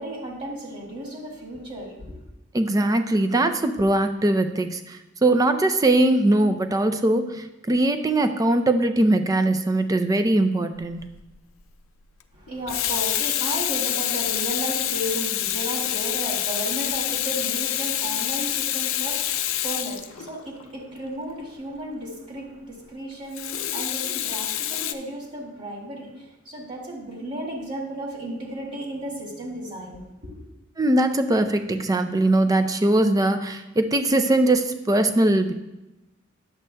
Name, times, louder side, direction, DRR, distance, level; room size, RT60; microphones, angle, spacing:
voice 1, 0.0-2.2 12.3-30.4, right 1 dB, 40° right, -4 dB, 1.9 m, -34 dB
voice 2, 2.5-11.0 30.8-35.5, right 1 dB, 20° right, 8 dB, 0.4 m, -21 dB
Water tap faucet / Sink (filling or washing), 10.9-11.1 12.5-20.7 23.3-24.9, left 12 dB, 85° left, 0.5 m, -27 dB
10.5 x 7.6 x 2.2 m, 0.99 s
head